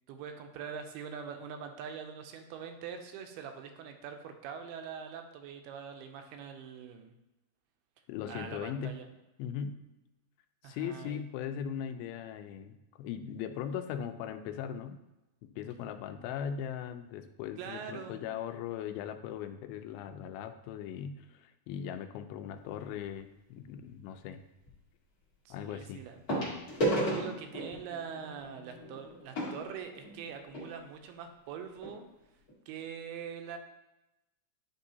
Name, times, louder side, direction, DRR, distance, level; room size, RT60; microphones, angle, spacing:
voice 1, 0.1-7.1 8.3-9.1 10.6-11.2 17.6-18.2 25.5-26.2 26.7-32.1 32.7-33.6, right 7 dB, 90° right, 6 dB, 2.6 m, -43 dB
voice 2, 8.1-8.9 9.4-9.8 10.6-15.0 15.4-24.4 25.5-26.0, left 8 dB, 80° left, 8 dB, 2.3 m, -39 dB
sound 1, 22.7-23.0 24.7-24.8 26.3-30.7 31.5-31.6 31.8-32.0 32.5-32.6, right 1 dB, 45° left, 1.2 m, -35 dB
10.0 x 3.7 x 2.7 m, 0.96 s
omnidirectional pair, 4.5 m